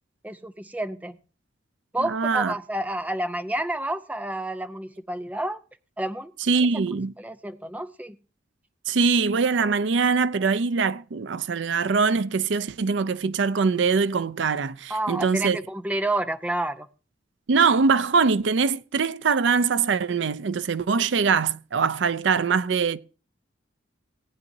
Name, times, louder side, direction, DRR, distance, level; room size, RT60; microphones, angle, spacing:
voice 1, 0.2-1.2 1.9-5.6 6.0-6.3 6.9-8.2 14.9-16.9, right 1 dB, 10° right, 0.5 m, -29 dB
voice 2, 2.0-2.5 6.5-7.1 8.9-15.6 17.5-23.0, right 5 dB, 70° right, 0.5 m, -23 dB
18.0 x 9.6 x 2.7 m
head